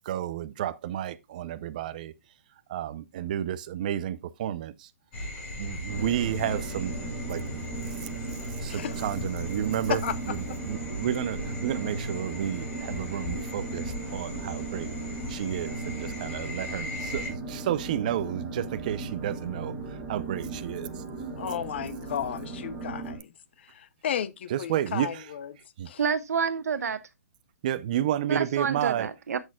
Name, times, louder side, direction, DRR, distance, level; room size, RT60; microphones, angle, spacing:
voice 1, 0.0-2.1 2.7-4.9 5.6-7.4 8.6-10.0 10.3-14.9 15.3-21.0 24.5-25.2 25.8-25.9 27.6-29.1, right 11 dB, 30° right, 0.5 m, -31 dB
sound 1, 5.1-17.3, left 1 dB, 25° left, 4.8 m, -38 dB
sound 2, 5.9-23.2, right 3 dB, 15° right, 2.0 m, -37 dB
voice 2, 8.7-9.1 9.9-10.6 21.4-23.3 23.6-25.5 25.9-26.0, left 9 dB, 45° left, 0.7 m, -33 dB
voice 3, 26.0-27.0 28.3-29.4, right 6 dB, 80° right, 1.1 m, -28 dB
14.0 x 6.3 x 2.3 m
hypercardioid pair, 175°, 8 cm